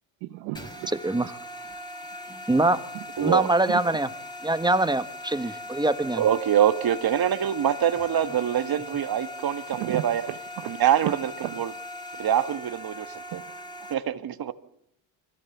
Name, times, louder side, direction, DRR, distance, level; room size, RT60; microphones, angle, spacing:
voice 1, 0.2-0.9 3.7-3.8 9.7-10.7 11.4-11.6, right 16 dB, 80° right, 8 dB, 1.1 m, -34 dB
sound 1, 0.5-13.9, left 1 dB, 10° left, 4.0 m, -40 dB
voice 2, 1.0-1.4 2.5-2.8 3.2-4.1 4.4-6.2, right 2 dB, 10° right, 11 dB, 1.3 m, -23 dB
voice 3, 3.2-3.5 6.2-10.3 10.6-11.3 11.6-11.7 12.2-13.4 13.9-14.5, right 10 dB, 50° right, 11 dB, 1.6 m, -24 dB
24.0 x 17.0 x 7.2 m, 0.73 s
supercardioid pair, 70°, 46 cm